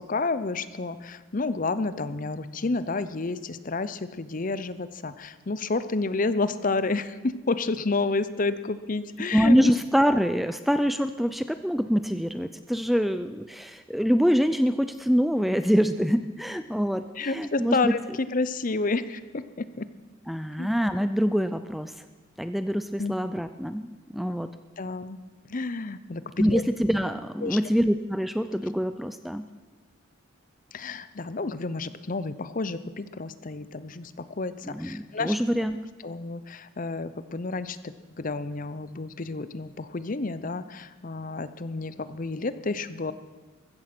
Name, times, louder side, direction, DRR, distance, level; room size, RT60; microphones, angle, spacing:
voice 1, 0.0-9.7 17.2-19.9 20.6-20.7 23.0-23.1 24.8-25.2 25.5-26.6 27.4-27.6 30.7-35.3 36.0-43.1, left 3 dB, 40° left, 14 dB, 0.7 m, -30 dB
voice 2, 9.3-17.9 20.3-22.0 22.4-24.5 26.4-29.5 34.7-35.8, equal, ahead, 10 dB, 0.4 m, -25 dB
15.0 x 14.0 x 6.1 m, 1.3 s
head